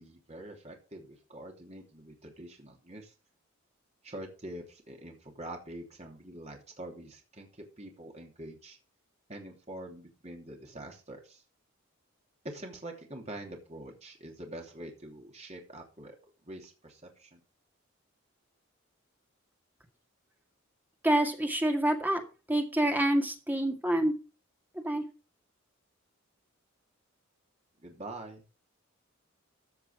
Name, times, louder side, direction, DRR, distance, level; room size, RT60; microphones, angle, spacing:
voice 1, 0.0-3.1 4.0-7.5 7.8-8.8 9.3-11.4 12.4-16.2 16.4-17.4 27.8-28.4, right 1 dB, 30° right, 2 dB, 3.0 m, -45 dB
voice 2, 21.0-22.2 22.5-24.1 24.8-25.0, right 1 dB, 10° right, 3 dB, 2.1 m, -27 dB
14.5 x 6.0 x 5.2 m, 0.33 s
head